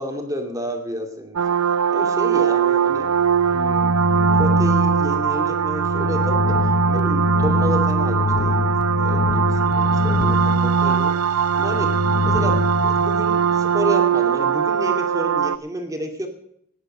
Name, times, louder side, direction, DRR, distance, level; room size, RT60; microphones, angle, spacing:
voice 1, 0.0-1.4 1.9-3.1 3.5-11.9 12.2-16.3, equal, 15° right, 3 dB, 2.4 m, -30 dB
sound 1, 1.4-15.6, right 7 dB, 90° right, 0.6 m, -20 dB
sound 2, 3.1-13.7, left 4 dB, 45° left, 0.5 m, -25 dB
18.0 x 10.0 x 5.6 m, 0.71 s
head